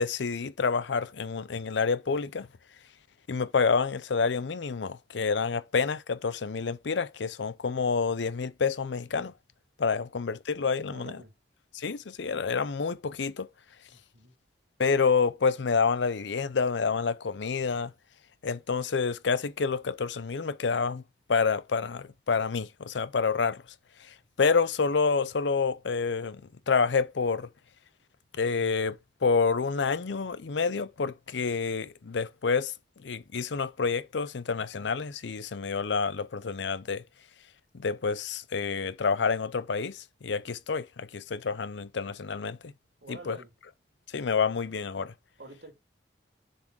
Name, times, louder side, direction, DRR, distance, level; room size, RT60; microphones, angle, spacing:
voice 1, 0.0-2.5 3.3-9.3 9.8-11.2 11.7-13.5 14.8-17.9 18.4-21.0 21.3-23.6 24.4-26.4 26.7-27.5 28.4-32.7 33.0-37.0 37.7-42.7 43.1-43.4 44.1-45.1, left 5 dB, 75° left, 0.6 m, -28 dB
voice 2, 10.9-11.3 13.9-14.3 43.0-43.5 45.4-45.7, right 2 dB, 65° right, 2.6 m, -47 dB
7.1 x 4.0 x 4.7 m
head